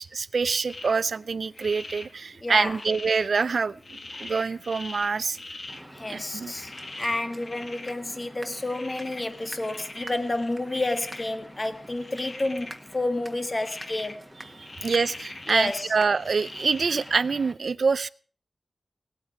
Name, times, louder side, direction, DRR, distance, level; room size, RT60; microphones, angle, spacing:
voice 1, 0.0-5.4 6.1-6.5 10.0-10.1 14.6-18.1, right 5 dB, 70° right, 0.6 m, -26 dB
sound 1, 0.7-17.3, left 2 dB, 50° left, 1.8 m, -43 dB
voice 2, 2.4-2.8 5.9-6.7 7.0-14.2 15.5-15.9, left 2 dB, 30° left, 1.6 m, -30 dB
sound 2, 5.7-17.5, right 1 dB, 10° right, 1.8 m, -46 dB
18.5 x 8.7 x 6.0 m
wide cardioid pair, 100°, 0 cm